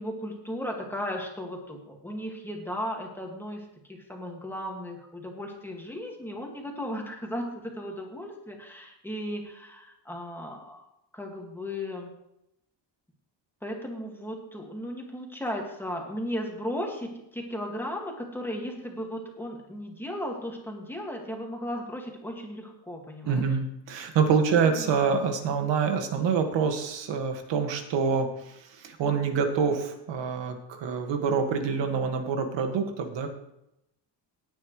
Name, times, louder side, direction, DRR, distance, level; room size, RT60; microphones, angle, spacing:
voice 1, 0.0-10.9 11.1-12.1 13.6-23.5 24.6-24.9, equal, 5° left, 0 dB, 2.1 m, -36 dB
voice 2, 23.3-28.3 28.8-33.3, right 6 dB, 80° right, 5 dB, 2.0 m, -26 dB
18.5 x 9.1 x 3.3 m, 0.83 s
cardioid pair, 155°, 43 cm